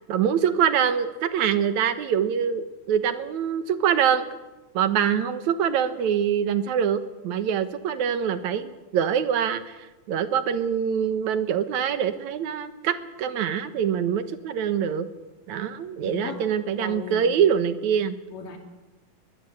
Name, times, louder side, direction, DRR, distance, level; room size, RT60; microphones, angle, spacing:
voice 1, 0.1-4.3 4.7-9.8 10.1-15.1 15.5-18.2, right 8 dB, 65° right, 10 dB, 2.5 m, -24 dB
voice 2, 16.0-16.4 16.8-17.3 18.3-18.6, left 6 dB, 90° left, 3 dB, 4.5 m, -36 dB
22.5 x 21.0 x 8.0 m, 1.1 s
omnidirectional pair, 3.7 m